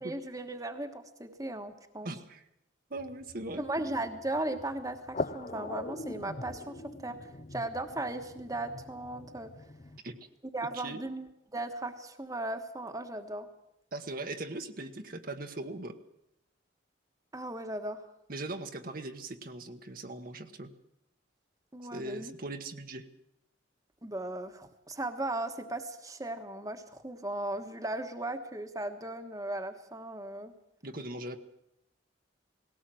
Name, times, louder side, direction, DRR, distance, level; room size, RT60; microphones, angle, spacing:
voice 1, 0.0-2.1 3.6-9.5 10.5-11.3 11.5-13.5 17.3-18.0 21.7-22.3 24.0-30.5, right 2 dB, 20° right, 7 dB, 1.3 m, -37 dB
voice 2, 2.0-2.4 2.9-3.6 10.0-10.1 10.7-11.0 13.9-16.0 18.3-20.7 21.9-23.0 30.8-31.4, right 2 dB, 45° right, 6 dB, 1.3 m, -40 dB
sound 1, 3.0-10.0, left 2 dB, 40° left, 0.7 m, -42 dB
19.5 x 17.5 x 7.7 m, 0.81 s
head